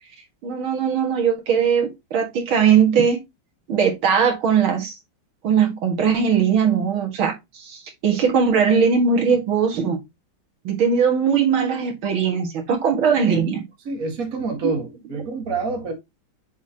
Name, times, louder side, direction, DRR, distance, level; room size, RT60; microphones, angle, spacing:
voice 1, 0.4-3.2 3.7-4.9 5.4-10.0 10.6-13.6, right 6 dB, 85° right, 2.6 m, -20 dB
voice 2, 13.9-15.9, right 3 dB, 45° right, 2.2 m, -27 dB
7.2 x 6.0 x 2.9 m
omnidirectional pair, 2.2 m